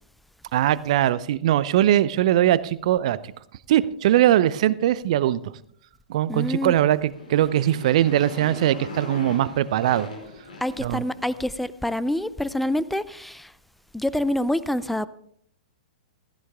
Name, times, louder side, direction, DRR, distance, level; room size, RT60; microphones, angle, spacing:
voice 1, 0.5-3.2 3.7-5.4 6.1-10.1 10.8-11.0, right 12 dB, 50° right, 0.7 m, -21 dB
voice 2, 6.3-6.7 10.6-13.5 13.9-15.1, left 1 dB, ahead, 0.5 m, -26 dB
Motorcycle, 6.9-11.5, left 2 dB, 75° left, 4.8 m, -39 dB
16.0 x 14.0 x 3.6 m
figure-of-eight pair, 105°, 4 cm